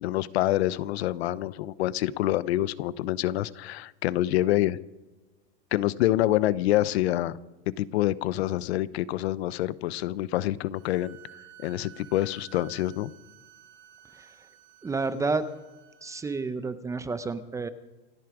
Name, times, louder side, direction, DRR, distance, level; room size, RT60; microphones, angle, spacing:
voice 1, 0.0-4.8 5.7-7.4 7.8-11.2 11.6-13.1, left 15 dB, 80° left, 18 dB, 0.8 m, -26 dB
sound 1, 10.7-16.4, right 12 dB, 45° right, 2.5 m, -53 dB
voice 2, 14.8-15.5 16.0-17.7, right 3 dB, 10° right, 12 dB, 0.6 m, -30 dB
28.0 x 9.6 x 5.0 m, 1.2 s
supercardioid pair, 145°, 31 cm